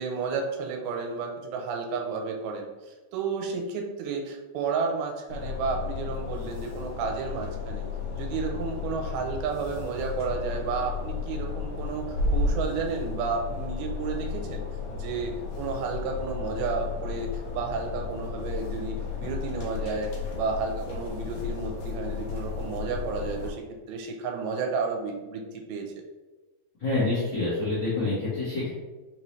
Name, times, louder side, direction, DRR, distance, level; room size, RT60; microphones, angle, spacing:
voice 1, 0.0-7.8 8.2-14.6 14.9-25.4 25.7-25.9, right 5 dB, 90° right, 2 dB, 2.5 m, -32 dB
sound 1, 5.3-23.5, left 5 dB, 90° left, 1.6 m, -33 dB
voice 2, 26.8-28.7, left 2 dB, 60° left, -13 dB, 1.2 m, -27 dB
5.7 x 2.7 x 3.1 m, 1.2 s
omnidirectional pair, 4.4 m